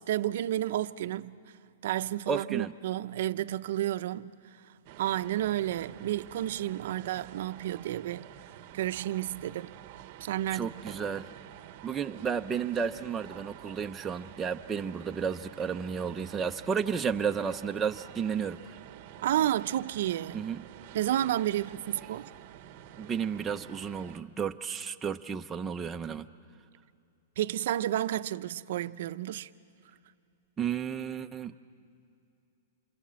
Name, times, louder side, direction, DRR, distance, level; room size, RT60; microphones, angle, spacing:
voice 1, 0.0-1.4 1.8-4.4 5.0-8.3 8.7-9.7 10.2-10.9 19.2-20.5 20.9-22.3 27.4-29.5, right 12 dB, 60° right, 0.6 m, -31 dB
voice 2, 2.3-2.7 10.5-11.3 11.8-18.7 20.3-20.6 23.0-26.3 30.6-31.5, right 6 dB, 10° right, 0.6 m, -32 dB
sound 1, 4.9-24.2, right 12 dB, 40° right, 0.9 m, -49 dB
27.0 x 26.5 x 7.6 m
hypercardioid pair, 160°, 0 cm